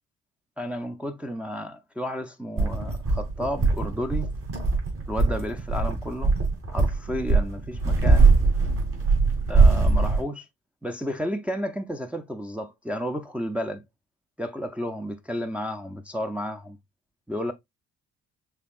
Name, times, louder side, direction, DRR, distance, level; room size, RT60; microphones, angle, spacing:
voice 1, 0.6-4.3 5.1-6.3 6.7-8.3 9.5-10.5 10.8-13.8 14.4-16.8 17.3-17.5, equal, 5° right, 0.6 m, -32 dB
sound 1, 2.6-10.2, right 3 dB, 50° right, 2.6 m, -21 dB
5.7 x 3.5 x 2.4 m
cardioid pair, 90°, 30 cm